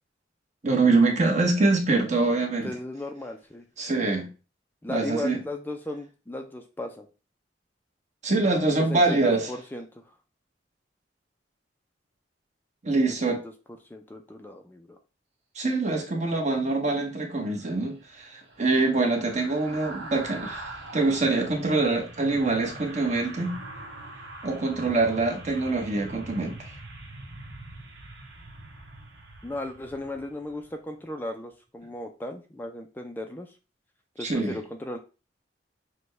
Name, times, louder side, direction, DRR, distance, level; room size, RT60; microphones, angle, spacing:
voice 1, 0.6-2.7 3.8-4.3 4.9-5.4 8.2-9.4 12.8-13.4 15.5-23.6 24.4-26.7 34.2-34.6, right 3 dB, 40° right, 1.0 m, -24 dB
voice 2, 2.6-3.7 4.8-7.1 8.9-10.1 13.1-13.4 13.9-15.0 29.4-33.6 34.2-35.0, left 1 dB, 10° left, 0.4 m, -36 dB
sound 1, 17.4-30.7 31.1-31.3, right 2 dB, 80° right, 1.0 m, -43 dB
6.2 x 2.2 x 3.3 m
head